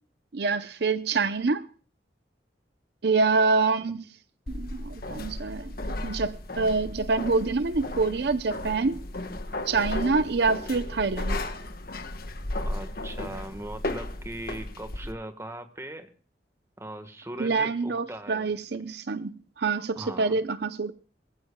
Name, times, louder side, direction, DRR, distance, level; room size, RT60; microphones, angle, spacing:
voice 1, 0.3-1.6 3.0-4.0 4.5-9.0 9.7-11.4 17.4-20.9, right 4 dB, 65° right, 12 dB, 0.6 m, -26 dB
Walking down spiral stairs, 4.5-15.1, left 1 dB, 55° left, 1.3 m, -35 dB
voice 2, 12.5-16.1 16.8-18.5 20.0-20.4, right 1 dB, 15° right, 8 dB, 1.4 m, -39 dB
23.5 x 15.5 x 2.3 m, 0.39 s
head